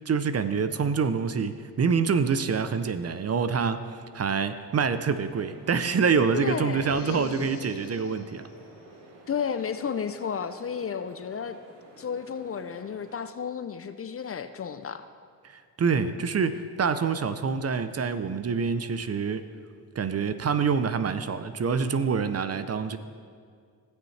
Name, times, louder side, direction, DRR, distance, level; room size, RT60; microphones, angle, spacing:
voice 1, 0.1-8.4 15.4-19.5 20.0-23.0, right 5 dB, 35° right, 11 dB, 0.6 m, -26 dB
sound 1, 5.1-13.1, right 2 dB, 85° right, 1.4 m, -52 dB
voice 2, 6.3-6.9 9.3-11.6 12.0-15.1, left 7 dB, 35° left, 10 dB, 0.5 m, -32 dB
sound 2, 6.7-8.3, left 10 dB, 70° left, 0.7 m, -39 dB
16.5 x 6.4 x 3.3 m, 2.1 s
supercardioid pair, 60°, 42 cm